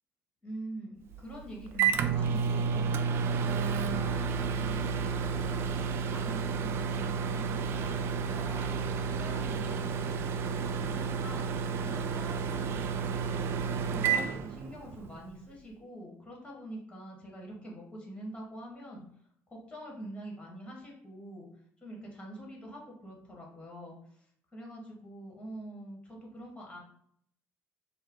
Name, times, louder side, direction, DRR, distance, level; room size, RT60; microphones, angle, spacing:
voice 1, 0.4-5.7 6.1-13.5 13.8-19.0 19.5-21.5 21.8-24.3 24.5-26.8, right 1 dB, 20° left, -1 dB, 1.5 m, -45 dB
Microwave oven, 1.1-15.1, right 6 dB, 50° right, 0.4 m, -31 dB
4.6 x 2.2 x 4.6 m, 0.68 s
cardioid pair, 130°, 5 cm